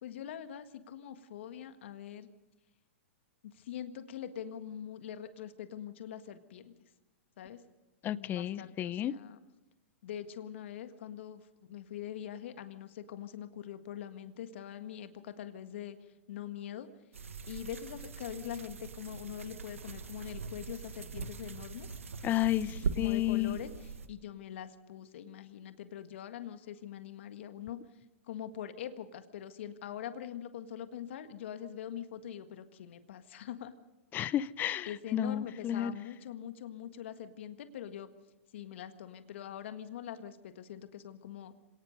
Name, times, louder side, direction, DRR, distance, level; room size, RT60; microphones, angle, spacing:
voice 1, 0.0-2.3 3.5-6.7 7.4-7.6 8.0-9.4 10.0-16.9 17.5-21.9 22.9-23.7 24.1-27.8 28.2-33.7 34.9-38.1 38.5-41.5, left 10 dB, 65° left, 9 dB, 1.7 m, -43 dB
voice 2, 8.0-9.1 22.2-23.6 34.1-35.9, left 12 dB, 25° left, 19 dB, 0.7 m, -32 dB
sound 1, 17.1-24.1, right 5 dB, 85° right, 1.3 m, -41 dB
26.5 x 18.5 x 5.4 m, 1.0 s
hypercardioid pair, 120°, 7 cm